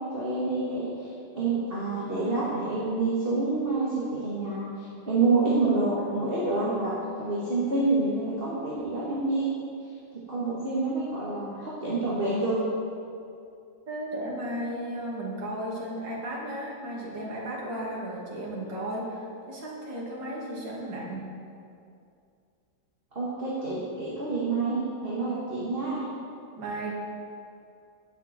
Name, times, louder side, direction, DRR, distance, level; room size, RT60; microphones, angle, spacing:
voice 1, 0.0-9.5 10.1-12.6 23.1-26.0, right 3 dB, 30° right, -8 dB, 2.2 m, -28 dB
voice 2, 13.9-21.3 26.6-26.9, right 1 dB, 65° right, -4 dB, 3.0 m, -34 dB
17.5 x 7.8 x 4.5 m, 2.5 s
omnidirectional pair, 2.2 m